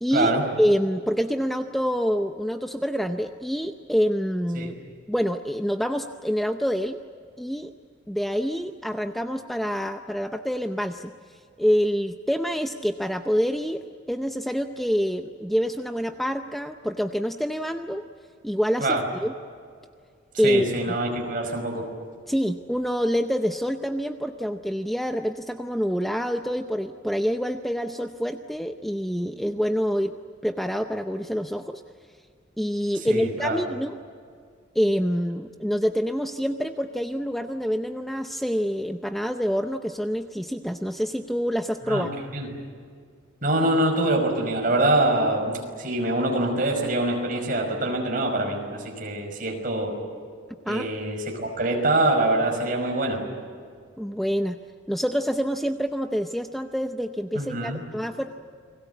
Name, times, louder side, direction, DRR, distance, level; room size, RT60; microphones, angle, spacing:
voice 1, 0.0-0.3 0.6-4.8 5.1-7.0 7.4-7.7 8.1-18.0 18.4-19.3 20.4-21.0 22.3-30.1 30.4-31.8 32.6-34.0 34.7-42.1 50.7-50.9 54.0-54.6 54.9-58.3, equal, ahead, 6 dB, 0.6 m, -26 dB
voice 2, 20.4-21.9 33.1-33.6 41.9-42.1 42.3-42.5 43.4-50.0 50.7-53.2 57.3-57.8, right 1 dB, 45° right, 2 dB, 5.5 m, -24 dB
30.0 x 21.5 x 8.3 m, 2.1 s
head